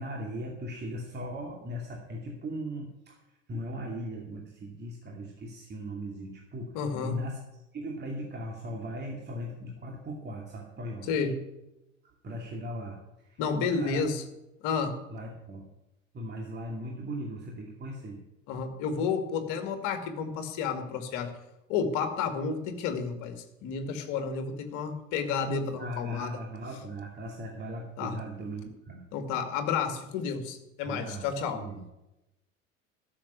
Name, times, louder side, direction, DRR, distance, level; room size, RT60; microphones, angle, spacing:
voice 1, 0.0-3.2 3.5-7.4 7.7-11.1 12.2-14.0 15.1-15.7 16.1-18.2 25.8-29.0 30.8-31.8, equal, 25° right, -1 dB, 2.5 m, -38 dB
voice 2, 6.7-7.2 11.1-11.4 13.4-14.2 14.6-14.9 18.5-21.3 21.7-26.4 28.0-28.1 29.1-31.6, left 5 dB, 50° left, 7 dB, 2.3 m, -31 dB
13.0 x 7.3 x 9.7 m, 0.94 s
figure-of-eight pair, 70°, 39 cm